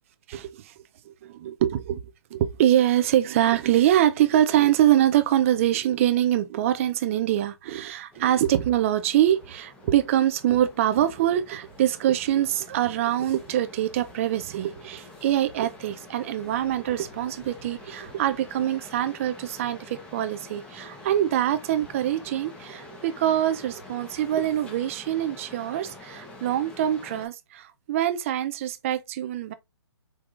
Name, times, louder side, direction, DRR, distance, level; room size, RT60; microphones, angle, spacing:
voice 1, 0.3-0.7 1.1-2.0 2.3-29.5, right 12 dB, 30° right, 0.5 m, -24 dB
sound 1, 8.1-27.3, left 2 dB, 5° left, 0.9 m, -47 dB
4.7 x 3.5 x 2.5 m
hypercardioid pair, 145°, 14 cm